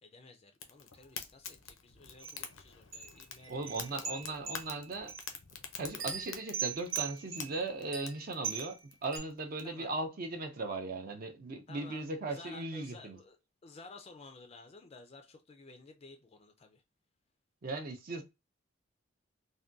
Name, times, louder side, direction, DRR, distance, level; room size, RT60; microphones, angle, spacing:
voice 1, 0.0-4.4 9.6-9.9 11.7-16.8, left 3 dB, 30° left, 0.3 m, -54 dB
Fire, 0.5-9.6, left 7 dB, 90° left, 0.6 m, -47 dB
sound 1, 2.2-2.4 2.9-5.3 5.9-8.7 9.1-9.2, right 8 dB, 70° right, 0.8 m, -40 dB
voice 2, 3.5-5.1 5.8-13.2 17.6-18.2, right 2 dB, 45° right, 0.4 m, -38 dB
3.4 x 2.2 x 2.5 m
head